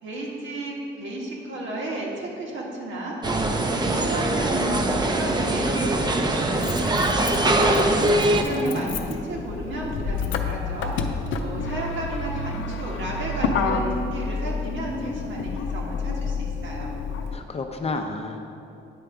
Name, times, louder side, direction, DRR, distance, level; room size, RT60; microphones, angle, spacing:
voice 1, 0.0-17.0, right 1 dB, 70° right, -3 dB, 1.4 m, -33 dB
sound 1, 3.2-8.4, right 1 dB, 20° right, 0.5 m, -22 dB
Motor vehicle (road), 5.0-5.1 6.2-17.3, left 4 dB, 75° left, 0.5 m, -29 dB
voice 2, 8.1-9.2 17.3-18.4, left 3 dB, 30° left, 4 dB, 0.5 m, -32 dB
9.0 x 3.3 x 4.9 m, 2.6 s
cardioid pair, 90°, 20 cm